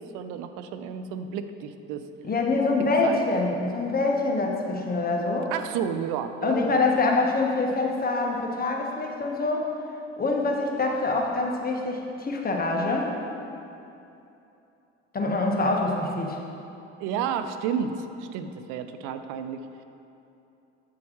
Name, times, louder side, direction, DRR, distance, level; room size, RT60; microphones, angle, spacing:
voice 1, 0.0-2.1 2.8-3.2 5.5-6.8 17.0-19.8, right 7 dB, 70° right, 9 dB, 0.5 m, -32 dB
voice 2, 2.2-5.5 6.4-9.7 10.2-13.1 15.1-16.4, left 3 dB, 30° left, 0 dB, 1.2 m, -25 dB
7.7 x 7.2 x 3.1 m, 2.8 s
hypercardioid pair, 65°, 32 cm